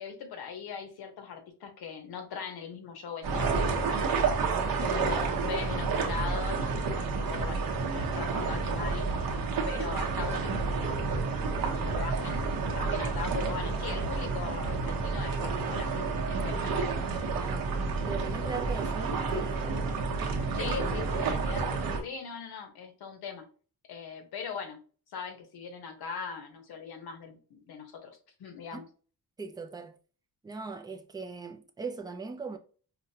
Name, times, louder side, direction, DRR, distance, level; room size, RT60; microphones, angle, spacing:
voice 1, 0.0-4.1 4.7-7.6 7.9-9.1 9.6-11.1 11.6-15.9 16.3-16.9 20.6-23.4 23.9-24.8 25.1-28.8, left 6 dB, 85° left, 1.0 m, -40 dB
sound 1, 3.2-22.0, right 4 dB, 65° right, 0.9 m, -30 dB
voice 2, 17.2-17.7 18.1-19.8 28.7-28.8 29.4-30.0 30.4-32.6, right 4 dB, 10° right, 0.3 m, -40 dB
4.9 x 2.1 x 2.7 m
wide cardioid pair, 155°, 37 cm